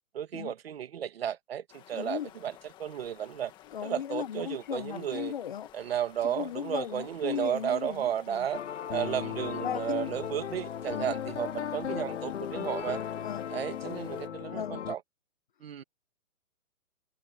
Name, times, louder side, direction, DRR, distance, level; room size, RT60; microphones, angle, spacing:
voice 1, 0.1-3.5 3.8-5.3 5.7-8.6 8.9-13.0 13.5-15.0 15.6-15.8, right 9 dB, 45° right, 2.0 m, -33 dB
sound 1, 1.7-14.3, left 13 dB, 10° left, 1.8 m, -54 dB
voice 2, 1.9-2.3 3.7-5.7 6.2-8.5 9.6-10.2 10.9-11.2 13.2-13.5 14.5-14.9, left 9 dB, 35° left, 1.2 m, -36 dB
sound 2, 8.5-14.9, left 9 dB, 50° left, 0.9 m, -36 dB
hypercardioid pair, 165°, 43 cm